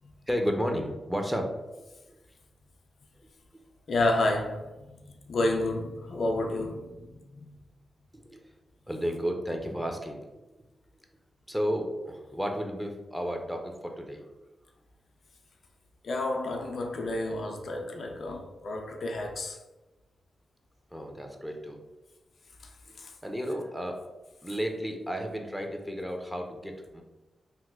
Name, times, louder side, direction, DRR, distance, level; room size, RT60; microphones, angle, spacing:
voice 1, 0.3-1.5 8.1-8.5 8.9-10.2 11.5-14.3 20.9-21.8 23.2-24.0 24.4-27.0, equal, 5° right, 0.6 m, -32 dB
voice 2, 3.9-7.6 16.0-19.6 22.6-22.7 23.0-23.1, left 2 dB, 65° left, 0.4 m, -30 dB
3.0 x 2.1 x 3.5 m
supercardioid pair, 40°, 0 cm